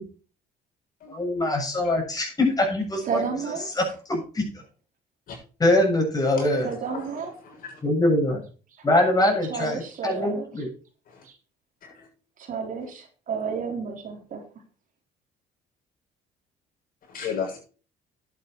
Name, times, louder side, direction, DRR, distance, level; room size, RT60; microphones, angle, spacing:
voice 1, 1.1-3.2 3.8-4.4 5.6-6.7 7.8-8.4 8.8-10.7, left 1 dB, 20° left, 1 dB, 7.5 m, -23 dB
voice 2, 3.1-3.7 6.6-7.3 8.7-8.9 9.5-10.5 11.2-11.3 12.4-14.4, right 6 dB, 50° right, 2 dB, 3.8 m, -31 dB
voice 3, 6.4-7.8 11.1-11.2 11.8-12.1 12.8-12.9 17.1-17.6, left 6 dB, 55° left, -1 dB, 7.3 m, -36 dB
11.0 x 9.4 x 4.6 m, 0.38 s
cardioid pair, 110°, 17 cm